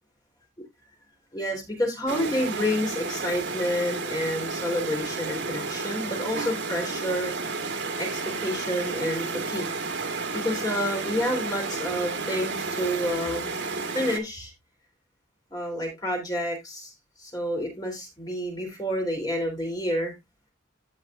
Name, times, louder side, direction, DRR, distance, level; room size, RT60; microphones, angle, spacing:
voice 1, 1.3-7.3 8.0-9.7 10.3-13.5 13.9-14.5 15.5-16.9 17.2-20.1, equal, 20° left, 3.3 m, -29 dB
sound 1, 2.1-14.2, right 4 dB, 60° right, 1.6 m, -32 dB
15.5 x 5.5 x 2.5 m
head